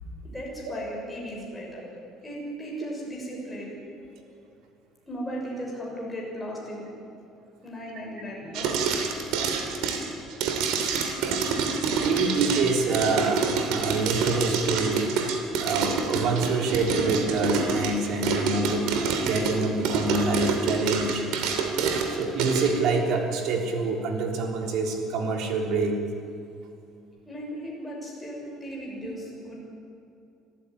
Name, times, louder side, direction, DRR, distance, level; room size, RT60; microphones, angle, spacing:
voice 1, 0.2-1.9 2.2-3.8 5.0-6.9 7.6-9.4 27.2-29.6, equal, 5° left, -3 dB, 6.5 m, -36 dB
sound 1, 8.5-22.7, right 5 dB, 75° right, 3.0 m, -27 dB
voice 2, 12.0-15.0 15.6-18.9 19.2-21.3 22.1-26.0, right 3 dB, 60° right, 2 dB, 3.7 m, -26 dB
25.5 x 14.5 x 9.9 m, 2.6 s
cardioid pair, 170°, 0 cm